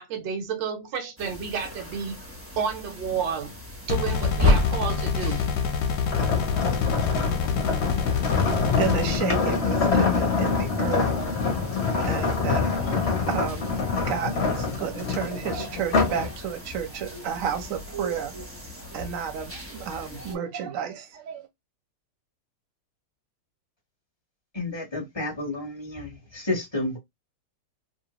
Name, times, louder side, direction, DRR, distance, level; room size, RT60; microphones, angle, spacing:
voice 1, 0.0-2.3 2.6-3.5 3.9-5.5, right 6 dB, 80° right, 1.4 m, -31 dB
sound 1, 1.2-20.4, left 2 dB, 15° right, 0.5 m, -34 dB
sound 2, 3.9-9.2, left 6 dB, 70° left, 1.1 m, -26 dB
sound 3, 6.1-16.3 16.7-17.0, left 5 dB, 45° left, 0.9 m, -25 dB
voice 2, 8.8-11.1 12.0-18.5 18.9-21.5, right 8 dB, 60° right, 1.0 m, -32 dB
voice 3, 24.5-27.0, left 2 dB, 20° left, 0.8 m, -31 dB
3.0 x 2.2 x 2.9 m
omnidirectional pair, 2.0 m